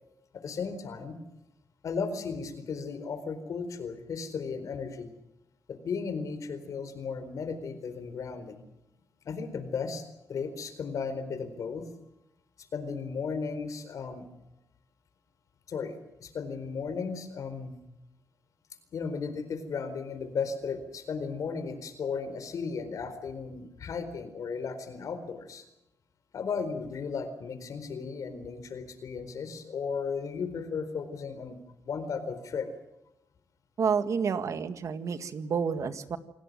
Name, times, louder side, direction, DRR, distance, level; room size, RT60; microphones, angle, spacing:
voice 1, 0.3-1.2 1.8-5.1 5.7-8.6 9.2-10.0 10.3-11.9 12.6-14.2 15.7-17.8 18.9-25.6 26.3-31.6 31.8-32.7, left 5 dB, 70° left, 10 dB, 4.3 m, -35 dB
voice 2, 33.8-36.2, right 6 dB, 60° right, 11 dB, 1.9 m, -29 dB
27.5 x 18.5 x 7.6 m, 0.87 s
cardioid pair, 115°, 6 cm